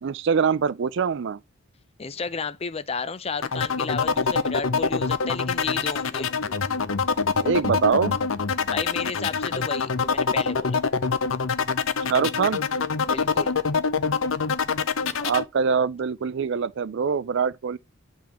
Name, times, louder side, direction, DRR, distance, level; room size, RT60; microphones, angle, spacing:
voice 1, 0.0-1.4 7.4-8.2 12.1-12.6 15.2-17.8, right 6 dB, 55° right, 0.4 m, -24 dB
voice 2, 2.0-6.3 8.7-10.8 13.1-13.5, left 5 dB, 30° left, 0.5 m, -32 dB
sound 1, 3.4-15.4, left 5 dB, 70° left, 0.6 m, -25 dB
10.5 x 3.6 x 3.0 m
head